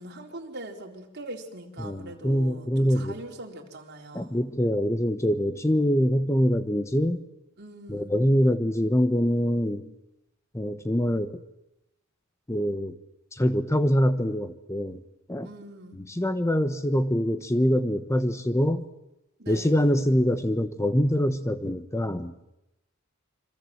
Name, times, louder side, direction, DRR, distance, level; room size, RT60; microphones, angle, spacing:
voice 1, 0.0-4.4 7.6-8.1 15.4-16.0 19.4-19.7, right 1 dB, 55° right, 2 dB, 4.2 m, -42 dB
voice 2, 1.8-3.1 4.1-7.2 7.9-9.9 10.5-11.4 12.5-12.9 13.3-15.0 15.3-15.5 15.9-18.8 19.5-22.3, equal, 15° left, 10 dB, 1.0 m, -24 dB
28.0 x 25.5 x 7.9 m, 0.88 s
head